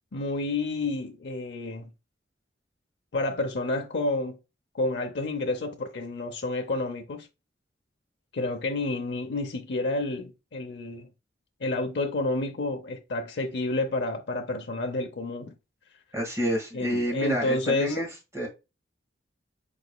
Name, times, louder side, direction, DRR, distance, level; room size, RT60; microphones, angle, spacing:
voice 1, 0.1-1.9 3.1-4.4 4.7-7.3 8.3-11.1 11.6-15.5 16.7-18.0, left 2 dB, 65° left, 0.6 m, -29 dB
voice 2, 16.1-18.1 18.3-18.5, equal, 15° right, 1.5 m, -28 dB
4.9 x 3.9 x 2.2 m
head